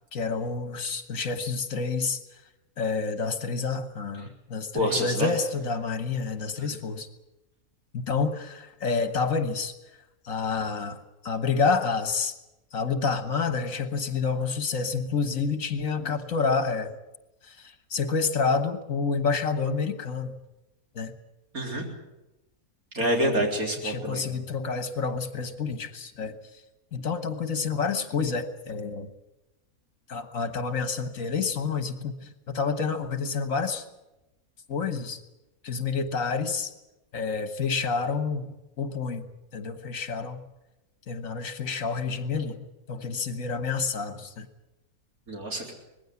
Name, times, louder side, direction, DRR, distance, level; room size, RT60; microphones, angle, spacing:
voice 1, 0.1-2.2 2.8-7.1 7.9-9.7 10.3-12.3 12.7-17.0 17.4-20.4 21.0-21.1 23.0-23.5 23.8-26.4 26.9-29.1 30.1-33.8 34.7-35.2 35.6-36.7 37.1-39.3 39.5-40.4 41.1-42.6 42.9-44.5, left 5 dB, 65° left, 10 dB, 1.8 m, -29 dB
voice 2, 4.7-5.3 21.5-21.8 22.9-24.2 45.3-45.7, equal, 75° right, 1 dB, 4.4 m, -27 dB
20.0 x 15.5 x 9.6 m, 0.98 s
omnidirectional pair, 1.5 m